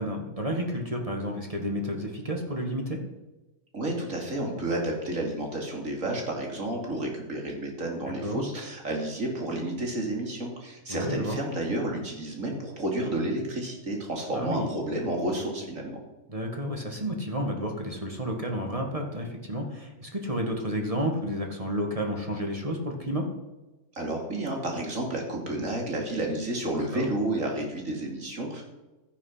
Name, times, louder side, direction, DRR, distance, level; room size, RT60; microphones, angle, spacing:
voice 1, 0.0-3.0 8.1-8.4 10.9-11.4 14.3-14.7 16.3-23.3 26.9-27.1, equal, 25° right, 2 dB, 1.8 m, -31 dB
voice 2, 3.7-16.0 23.9-28.6, right 1 dB, 60° right, 1 dB, 3.2 m, -31 dB
13.5 x 9.5 x 5.7 m, 1.1 s
omnidirectional pair, 1.6 m